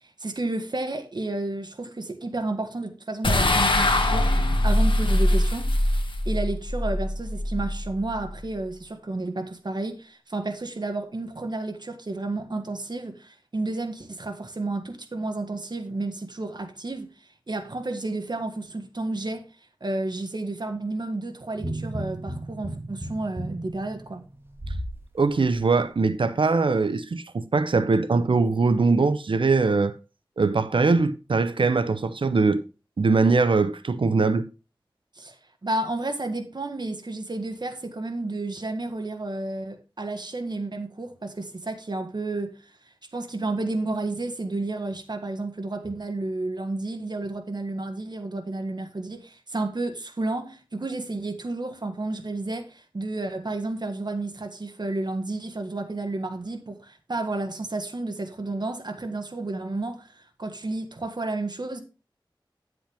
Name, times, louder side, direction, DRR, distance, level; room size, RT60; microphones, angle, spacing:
voice 1, 0.2-4.3 4.6-17.1 17.5-19.4 19.8-24.2 35.1-42.6 43.1-61.8, right 2 dB, 60° right, 1.5 m, -31 dB
sound 1, 3.2-8.6, left 1 dB, 75° left, 1.6 m, -23 dB
sound 2, 21.5-25.0 25.4-25.6, right 1 dB, 25° right, 1.8 m, -34 dB
voice 2, 25.1-29.9 30.4-32.6 33.0-34.4, right 4 dB, 80° right, 0.7 m, -22 dB
10.5 x 7.7 x 3.5 m
wide cardioid pair, 60°, 9 cm